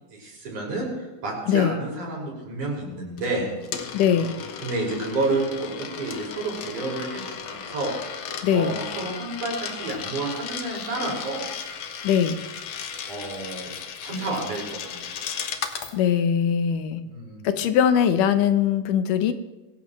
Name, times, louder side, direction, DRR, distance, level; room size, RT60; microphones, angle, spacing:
voice 1, 0.2-3.5 4.6-7.9 8.5-11.4 12.8-13.7 14.0-15.1 17.1-17.4, right 2 dB, 65° right, -2 dB, 7.0 m, -30 dB
voice 2, 1.5-1.8 3.9-4.3 8.4-8.8 12.0-12.4 15.9-17.0 17.4-19.3, left 8 dB, 80° left, 9 dB, 2.5 m, -21 dB
Coin (dropping), 3.2-16.0, left 7 dB, 65° left, 2.1 m, -35 dB
22.0 x 16.5 x 3.1 m, 1.1 s
omnidirectional pair, 3.8 m